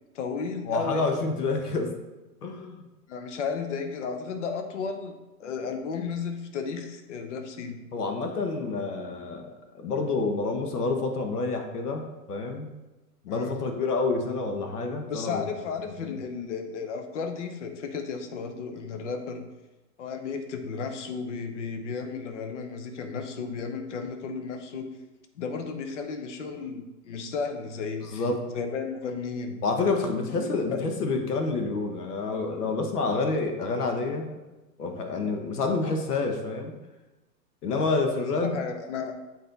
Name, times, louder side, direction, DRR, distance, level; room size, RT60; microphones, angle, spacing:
voice 1, 0.1-1.2 3.1-7.8 13.3-13.6 15.1-19.4 20.0-24.9 25.3-28.2 28.5-29.6 30.3-30.8 38.1-39.2, left 5 dB, 50° left, 6 dB, 0.8 m, -34 dB
voice 2, 0.7-1.9 2.4-2.8 7.9-12.7 13.2-15.4 16.0-16.2 28.1-28.4 29.6-34.3 34.8-36.7 37.6-38.6, left 3 dB, 70° left, 4 dB, 1.4 m, -28 dB
7.8 x 4.5 x 3.9 m, 1.1 s
hypercardioid pair, 170°, 48 cm